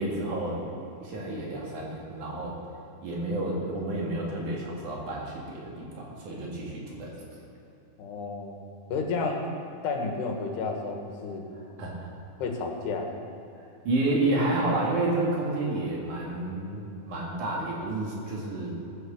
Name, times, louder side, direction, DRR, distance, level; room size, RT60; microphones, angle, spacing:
voice 1, 0.0-2.6 3.0-7.1 11.8-11.9 13.8-18.8, right 2 dB, 55° right, -3 dB, 3.2 m, -30 dB
voice 2, 8.0-8.6 8.9-9.4 9.8-11.5 12.4-13.1, left 4 dB, 85° left, 2 dB, 3.5 m, -31 dB
15.0 x 9.5 x 6.9 m, 3.0 s
omnidirectional pair, 4.6 m